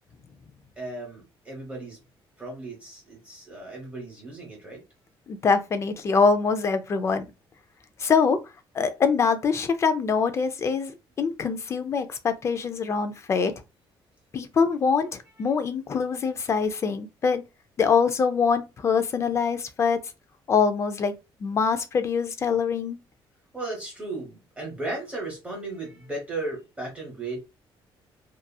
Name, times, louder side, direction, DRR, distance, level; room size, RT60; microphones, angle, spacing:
voice 1, 0.8-2.0 2.4-4.8 23.5-27.4, right 2 dB, 15° right, 0.9 m, -35 dB
voice 2, 5.3-7.2 8.0-8.4 8.7-13.5 14.3-17.4 17.8-20.0 20.5-21.1 21.4-23.0, left 5 dB, 30° left, 0.4 m, -24 dB
2.8 x 2.4 x 2.2 m
cardioid pair, 165°, 9 cm